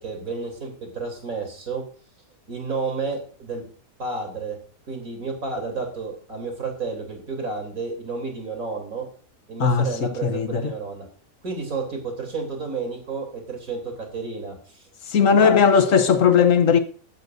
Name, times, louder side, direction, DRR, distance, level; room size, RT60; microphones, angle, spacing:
voice 1, 0.0-1.8 2.5-3.6 4.0-4.6 4.9-9.0 9.5-11.0 11.4-14.8 15.3-15.6, right 4 dB, 70° right, 3.8 m, -31 dB
voice 2, 10.2-10.6 15.1-16.8, left 6 dB, 65° left, 1.3 m, -17 dB
14.5 x 11.5 x 2.6 m
omnidirectional pair, 1.5 m